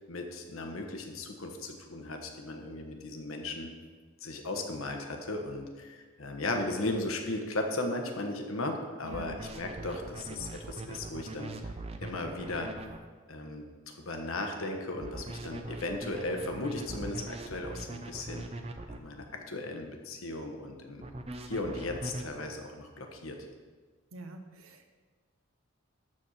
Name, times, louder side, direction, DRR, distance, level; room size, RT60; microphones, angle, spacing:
voice 1, 0.1-3.7 4.2-11.5 12.0-12.7 13.3-13.6 14.1-18.4 18.9-21.1 21.5-23.4, left 2 dB, 85° left, 3 dB, 1.3 m, -36 dB
sound 1, 6.9-7.0 9.1-13.0 15.0-19.0 21.0-22.3, right 2 dB, 30° right, 0.5 m, -41 dB
voice 2, 9.0-9.4 24.1-24.9, right 2 dB, 85° right, 6 dB, 1.0 m, -46 dB
12.0 x 4.4 x 6.5 m, 1.5 s
head